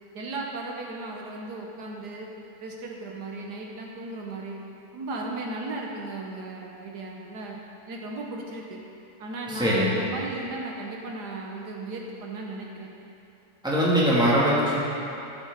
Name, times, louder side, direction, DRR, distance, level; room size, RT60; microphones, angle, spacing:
voice 1, 0.1-2.3 2.6-4.6 4.9-7.6 7.9-8.8 9.2-12.9, right 2 dB, 80° right, -1 dB, 1.7 m, -36 dB
voice 2, 9.5-10.0 13.6-14.8, equal, 5° right, -9 dB, 2.8 m, -22 dB
16.0 x 9.0 x 4.1 m, 2.8 s
omnidirectional pair, 1.7 m